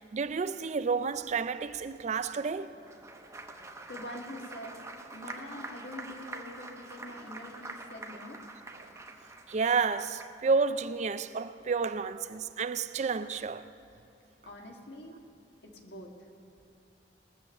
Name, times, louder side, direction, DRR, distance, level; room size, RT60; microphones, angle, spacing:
voice 1, 0.0-2.7 8.8-8.9 9.5-13.6, right 5 dB, 40° right, 0.4 m, -30 dB
Applause, 2.7-10.5, right 2 dB, 15° right, 0.9 m, -46 dB
voice 2, 3.9-4.8 5.1-8.4 14.4-15.2 15.6-16.1, left 1 dB, 70° left, 1.7 m, -44 dB
19.5 x 7.0 x 7.6 m
head